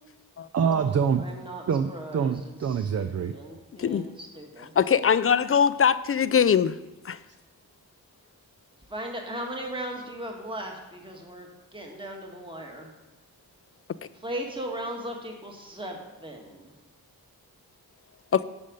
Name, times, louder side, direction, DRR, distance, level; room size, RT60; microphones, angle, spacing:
voice 1, 0.5-1.2 1.7-3.3, right 7 dB, 45° right, 10 dB, 0.5 m, -25 dB
voice 2, 1.2-1.6 1.9-2.3 3.3-4.7 8.9-11.5 11.7-12.9 14.2-16.7, right 1 dB, 15° right, 1 dB, 1.7 m, -37 dB
voice 3, 4.8-6.8 7.1-7.2 18.3-18.4, left 7 dB, 40° left, 15 dB, 0.4 m, -21 dB
9.6 x 5.2 x 5.2 m, 1.0 s
cardioid pair, 50°, 37 cm